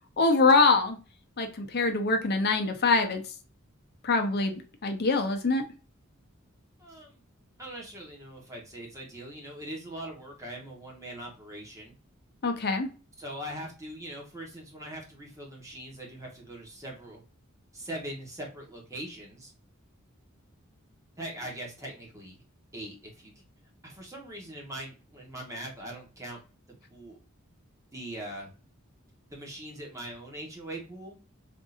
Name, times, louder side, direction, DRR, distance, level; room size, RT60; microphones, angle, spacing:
voice 1, 0.2-1.0 1.4-3.2 4.0-5.6 12.4-12.9, left 3 dB, 50° left, 5 dB, 0.7 m, -24 dB
voice 2, 6.8-7.2 7.6-12.0 13.2-17.2 17.7-19.5 21.2-22.4 22.7-23.3 23.8-26.4 26.7-27.2 27.9-28.5 29.3-31.2, right 1 dB, 15° right, -1 dB, 1.1 m, -41 dB
3.6 x 2.6 x 2.4 m, 0.35 s
head